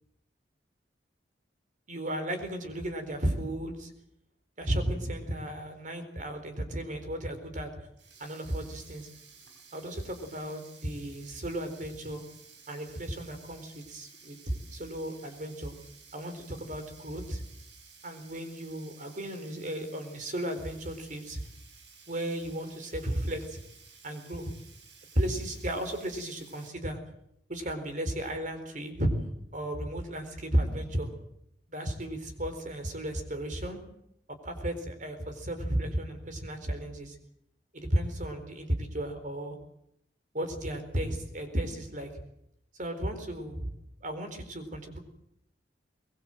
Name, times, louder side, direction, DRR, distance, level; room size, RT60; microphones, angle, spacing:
voice 1, 1.9-3.9 4.6-7.7 8.2-9.1 9.7-12.2 12.7-15.7 16.1-17.4 18.0-21.4 22.1-23.6 24.0-24.5 25.1-27.0 27.5-29.1 29.5-31.1 31.7-33.8 34.3-37.2 37.7-39.6 40.3-42.2 42.8-43.7 44.0-45.0, right 1 dB, 45° right, 7 dB, 4.2 m, -34 dB
Sink (filling or washing), 8.0-26.7, right 5 dB, 90° right, 4.5 m, -55 dB
22.5 x 21.0 x 7.8 m, 0.75 s
head